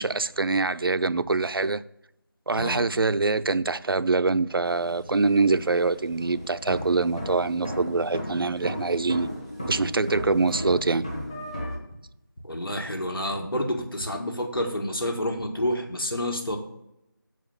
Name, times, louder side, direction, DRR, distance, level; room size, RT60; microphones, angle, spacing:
voice 1, 0.0-1.8 2.5-9.3 9.7-11.0, right 3 dB, 90° right, 0.5 m, -24 dB
voice 2, 2.5-2.9 12.4-16.6, left 1 dB, 85° left, 2.1 m, -29 dB
sound 1, 4.6-11.8, equal, 15° left, 1.0 m, -36 dB
7.3 x 5.0 x 6.8 m
figure-of-eight pair, 180°, 12 cm